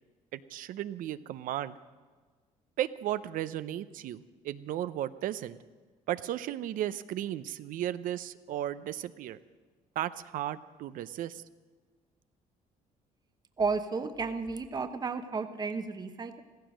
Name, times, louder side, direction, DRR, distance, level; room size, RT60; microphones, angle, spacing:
voice 1, 0.3-1.8 2.8-5.6 6.1-9.4 10.0-11.4, right 12 dB, 75° right, 14 dB, 0.7 m, -35 dB
voice 2, 13.6-16.4, right 4 dB, 30° right, 8 dB, 1.0 m, -33 dB
15.0 x 15.0 x 6.3 m, 1.5 s
cardioid pair, 100°, 14 cm